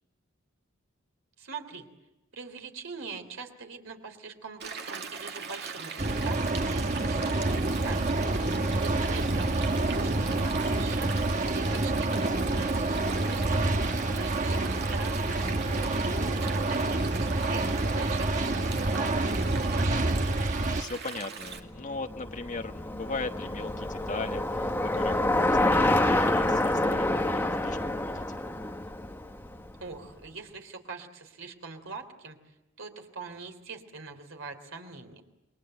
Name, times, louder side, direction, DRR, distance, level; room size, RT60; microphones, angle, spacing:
voice 1, 1.4-1.9 2.3-8.2 8.5-11.1 11.5-13.7 14.1-15.6 16.2-20.2 29.8-32.4 32.8-35.2, right 4 dB, 70° right, 6 dB, 3.3 m, -43 dB
Stream, 4.6-21.6, right 5 dB, 55° right, 2.2 m, -40 dB
sound 1, 6.0-20.8, right 2 dB, 40° right, 1.1 m, -28 dB
voice 2, 15.7-16.1 20.8-28.5, left 3 dB, 40° left, 6 dB, 1.3 m, -39 dB
Bicycle, 21.6-29.9, left 1 dB, 10° left, 1.3 m, -27 dB
28.5 x 22.5 x 7.8 m, 0.99 s
head